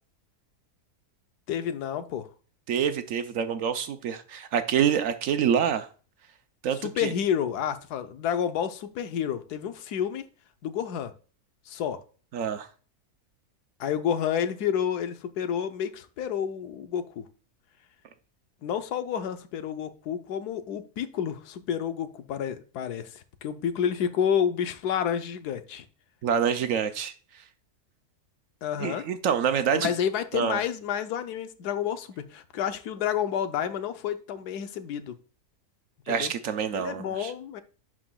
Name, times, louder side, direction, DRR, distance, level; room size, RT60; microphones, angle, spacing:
voice 1, 1.5-2.3 6.8-10.2 10.6-11.1 11.7-12.0 13.8-17.3 18.6-25.8 28.6-29.0 29.7-35.2 36.1-36.3 36.7-37.6, left 8 dB, 85° left, 1.3 m, -30 dB
voice 2, 2.7-5.9 6.6-7.1 12.3-12.7 26.2-27.1 28.8-29.9 30.3-30.6 36.1-37.3, right 8 dB, 65° right, 0.9 m, -26 dB
11.0 x 4.9 x 2.3 m
omnidirectional pair, 1.6 m